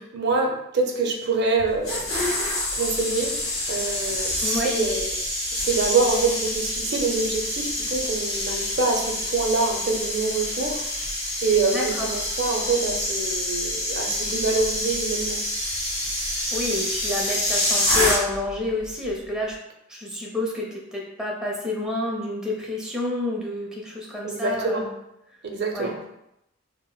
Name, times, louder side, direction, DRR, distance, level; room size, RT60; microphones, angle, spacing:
voice 1, 0.0-2.0 2.7-3.4 3.7-5.1 5.5-10.8 11.4-15.5 24.2-24.9 25.4-26.0, right 3 dB, 55° right, 2 dB, 0.5 m, -25 dB
sound 1, 1.6-18.5 18.8-19.1, left 1 dB, 20° left, 1.2 m, -27 dB
voice 2, 11.7-12.1 16.5-19.5 19.9-24.9 25.7-25.9, left 2 dB, 5° right, -3 dB, 0.6 m, -29 dB
3.8 x 2.0 x 2.2 m, 0.83 s
head